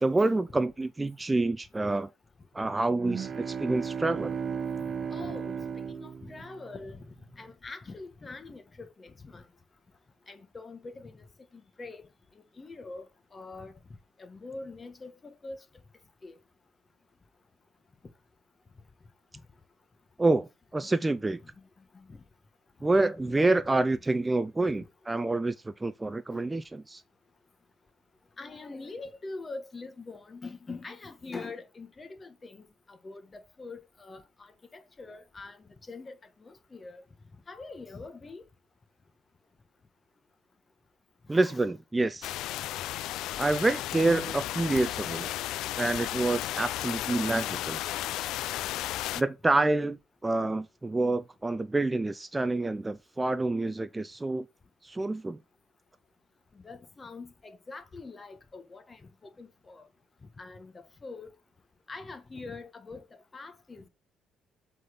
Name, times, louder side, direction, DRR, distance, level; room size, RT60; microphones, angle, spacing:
voice 1, 0.0-2.1 2.5-4.4 20.2-21.4 22.8-27.0 41.3-42.3 43.4-45.3 45.8-47.8 49.1-54.5 54.8-55.4, right 2 dB, 15° right, 0.5 m, -27 dB
sound 1, 2.9-7.0, right 6 dB, 45° right, 0.8 m, -35 dB
voice 2, 5.1-5.6 5.9-7.1 7.3-9.4 10.3-11.2 11.8-12.0 12.6-13.0 13.3-13.7 14.2-15.6 16.2-16.3 20.8-20.9 21.9-22.2 23.2-23.3 26.3-26.4 28.4-34.5 34.7-35.6 35.9-36.1 36.4-37.0 37.5-38.4 41.3-41.6 56.6-59.9 60.4-60.7 61.0-61.3 61.9-63.0 63.3-63.8, left 3 dB, 25° left, 1.5 m, -43 dB
sound 2, 42.2-49.2, left 14 dB, 80° left, 0.3 m, -34 dB
7.5 x 4.1 x 5.1 m
cardioid pair, 95°, 0 cm